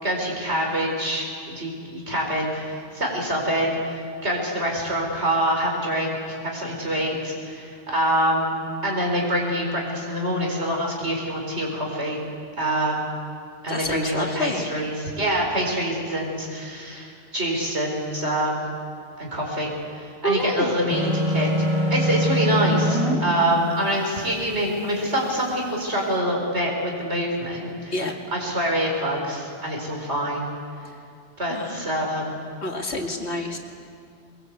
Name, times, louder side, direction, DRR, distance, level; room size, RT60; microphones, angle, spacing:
voice 1, 0.0-8.5 8.8-12.2 12.6-13.1 13.6-18.6 19.2-21.5 21.9-27.9 28.3-30.5 31.4-32.3, equal, 80° right, -1 dB, 5.3 m, -25 dB
voice 2, 13.7-14.7 20.2-20.8 27.9-28.1 31.5-31.9 32.6-33.6, left 1 dB, 80° left, 2 dB, 2.6 m, -28 dB
sound 1, 20.9-23.2, equal, 25° right, 3.8 m, -22 dB
22.5 x 22.0 x 8.3 m, 2.4 s
omnidirectional pair, 1.1 m